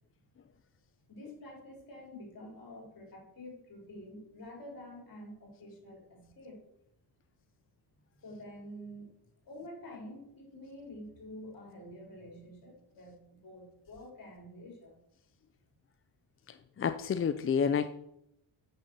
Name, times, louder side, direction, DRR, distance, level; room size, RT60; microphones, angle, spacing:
voice 1, 1.1-6.6 8.2-9.1 9.4-15.0, left 1 dB, 45° left, 0 dB, 4.9 m, -48 dB
voice 2, 16.8-17.9, left 7 dB, 30° left, 10 dB, 0.4 m, -29 dB
9.6 x 6.6 x 6.6 m, 0.79 s
cardioid pair, 120°, 47 cm